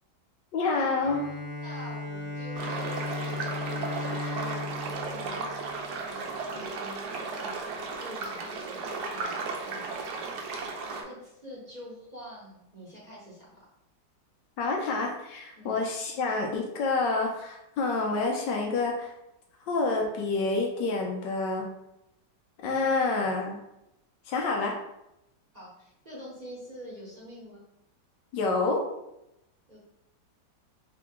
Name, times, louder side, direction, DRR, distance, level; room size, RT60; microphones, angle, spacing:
voice 1, 0.5-1.2 14.6-19.1 19.7-21.7 22.6-23.6 24.3-24.8 28.3-28.9, left 3 dB, 80° left, 1 dB, 1.4 m, -28 dB
Bowed string instrument, 1.0-6.5, left 3 dB, 55° left, 1.5 m, -36 dB
voice 2, 1.6-13.7 15.5-15.7 25.5-27.6 29.7-29.8, equal, 25° right, -8 dB, 1.3 m, -46 dB
sound 1, 2.6-11.0, right 4 dB, 70° right, 1.1 m, -35 dB
3.6 x 2.9 x 3.6 m, 0.86 s
omnidirectional pair, 2.0 m